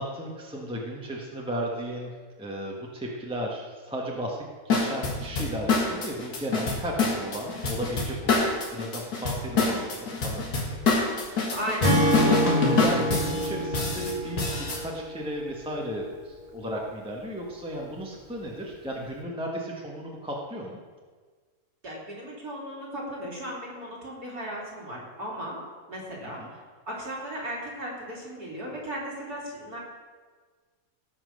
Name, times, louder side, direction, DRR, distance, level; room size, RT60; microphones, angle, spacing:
voice 1, 0.0-2.1 2.4-10.8 11.3-11.5 12.0-20.8 26.2-26.5, equal, 5° right, -2 dB, 1.2 m, -35 dB
sound 1, 4.7-14.8, left 3 dB, 85° left, 2.4 m, -26 dB
voice 2, 11.5-12.0 21.8-25.6 25.9-26.4 26.9-29.8, equal, 75° right, -4 dB, 3.5 m, -36 dB
Acoustic guitar / Strum, 11.8-15.2, equal, 20° right, 2.3 m, -26 dB
17.0 x 6.0 x 6.4 m, 1.5 s
omnidirectional pair, 1.6 m